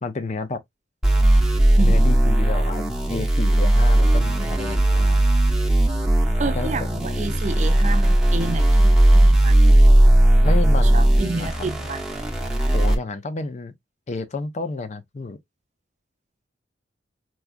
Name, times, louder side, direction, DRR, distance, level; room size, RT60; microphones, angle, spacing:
voice 1, 0.0-0.6 1.8-5.3 6.5-6.7 7.0-7.7 10.4-11.5 12.7-13.7 14.1-15.4, left 3 dB, 35° left, 0.5 m, -31 dB
sound 1, 1.0-12.9, right 1 dB, 5° right, 0.8 m, -17 dB
voice 2, 6.4-9.6 10.6-12.0, right 3 dB, 40° right, 0.6 m, -30 dB
4.6 x 2.3 x 2.4 m
head